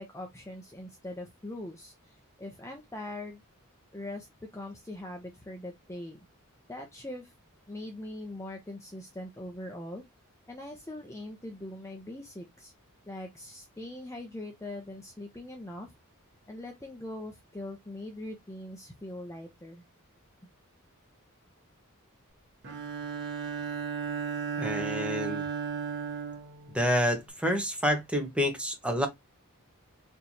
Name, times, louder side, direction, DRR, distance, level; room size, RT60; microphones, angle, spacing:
voice 1, 0.0-1.9 2.4-3.4 3.9-6.2 6.7-7.3 7.7-10.0 10.5-12.7 13.1-15.9 16.5-19.8, left 1 dB, 15° left, 0.7 m, -41 dB
Bowed string instrument, 22.6-27.3, right 6 dB, 55° right, 1.2 m, -35 dB
voice 2, 24.6-25.4 26.7-29.1, equal, 5° right, 1.1 m, -28 dB
4.4 x 3.2 x 2.8 m
head